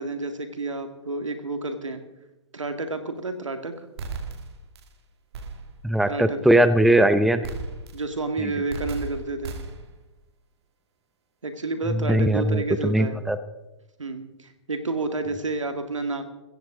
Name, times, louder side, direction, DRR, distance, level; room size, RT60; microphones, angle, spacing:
voice 1, 0.0-2.0 2.5-3.9 6.1-6.4 7.9-9.6 11.4-13.2 14.0-16.3, right 3 dB, 90° right, 8 dB, 2.0 m, -30 dB
sound 1, 4.0-4.9 5.3-5.9 7.4-8.2 8.7-10.0, right 4 dB, 60° right, 2.2 m, -36 dB
voice 2, 5.8-7.5 12.1-13.4, right 1 dB, ahead, 12 dB, 0.6 m, -20 dB
16.0 x 15.0 x 3.8 m, 0.99 s
hypercardioid pair, 125°, 16 cm